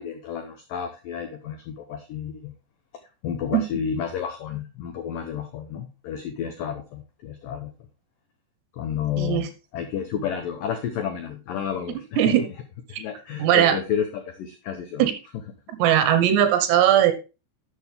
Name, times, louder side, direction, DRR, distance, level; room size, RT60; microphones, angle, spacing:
voice 1, 0.0-2.5 3.2-7.7 8.7-12.4 12.9-15.1, left 8 dB, 90° left, 7 dB, 1.9 m, -31 dB
voice 2, 9.2-9.5 12.2-12.4 12.9-13.0 13.4-13.8 15.0-15.1 15.8-17.1, right 11 dB, 75° right, 10 dB, 3.1 m, -19 dB
11.5 x 6.6 x 3.4 m, 0.29 s
omnidirectional pair, 5.2 m